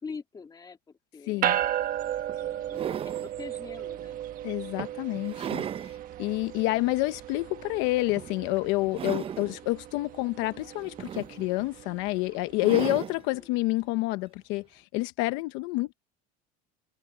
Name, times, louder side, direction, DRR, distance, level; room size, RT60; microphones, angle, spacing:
voice 1, 0.0-1.7 2.4-4.2 13.3-13.5, left 5 dB, 20° left, 3.3 m, -44 dB
voice 2, 1.3-1.6 4.4-5.9 6.2-15.9, left 20 dB, 75° left, 1.0 m, -28 dB
sound 1, 1.4-13.0, right 11 dB, 45° right, 1.2 m, -35 dB
sound 2, 1.6-1.7 2.3-3.3 4.0-4.2 4.8-6.0 6.4-6.5 8.1-8.5 8.8-9.6 10.8-11.7 12.6-13.2 14.6-14.7, right 9 dB, 30° right, 0.7 m, -36 dB
cardioid pair, 135°, 19 cm